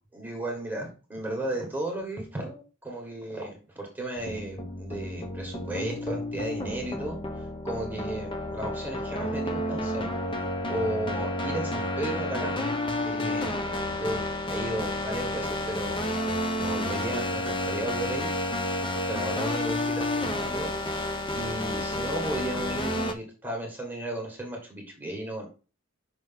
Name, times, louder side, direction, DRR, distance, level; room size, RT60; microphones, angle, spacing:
voice 1, 0.1-7.2 7.6-10.4 10.7-12.7 13.0-13.5 14.0-14.2 14.5-16.1 16.6-18.3 18.9-20.7 21.3-25.5, right 1 dB, 10° right, 0 dB, 1.5 m, -34 dB
sound 1, 4.2-23.1, left 1 dB, 25° left, 0.6 m, -30 dB
5.9 x 3.1 x 5.7 m, 0.34 s
head